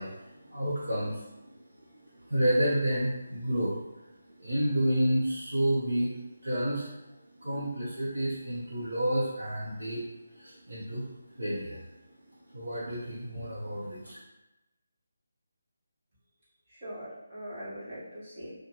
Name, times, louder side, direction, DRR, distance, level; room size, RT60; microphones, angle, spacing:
voice 1, 0.0-1.9 2.2-3.8 4.4-6.1 6.4-6.9 7.4-10.0 10.3-11.9 12.5-14.2, right 1 dB, 65° right, -8 dB, 0.7 m, -30 dB
voice 2, 16.7-18.5, equal, 25° right, -11 dB, 1.5 m, -41 dB
2.7 x 2.1 x 3.0 m, 0.98 s
figure-of-eight pair, 150°, 0 cm